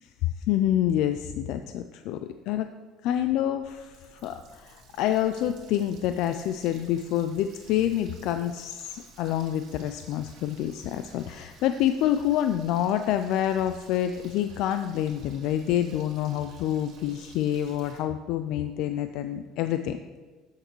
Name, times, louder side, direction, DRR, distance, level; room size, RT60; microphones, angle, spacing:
voice 1, 0.4-2.7 3.0-20.0, left 11 dB, 65° left, 9 dB, 0.3 m, -27 dB
Water tap faucet, 3.5-18.0, right 3 dB, 55° right, 2.0 m, -54 dB
12.0 x 6.5 x 3.0 m, 1.4 s
cardioid pair, 150°, 0 cm